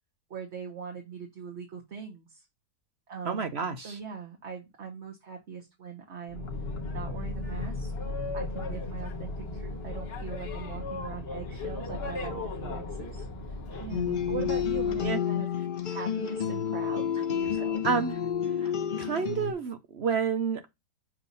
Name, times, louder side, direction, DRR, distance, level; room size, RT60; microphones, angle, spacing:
voice 1, 0.3-2.4 3.1-3.5 3.8-6.5 6.9-7.9 8.3-15.5 15.9-17.8, right 6 dB, 45° right, 1.4 m, -41 dB
voice 2, 3.3-4.0 14.1-14.5 15.0-15.2 17.8-18.2 18.6-18.7 19.0-20.7, right 6 dB, 65° right, 0.6 m, -30 dB
Boat Water vehicle, 6.3-15.1, left 2 dB, 45° left, 1.0 m, -36 dB
sound 1, 13.9-19.5, left 8 dB, 85° left, 0.4 m, -30 dB
7.2 x 2.7 x 5.3 m
omnidirectional pair, 1.8 m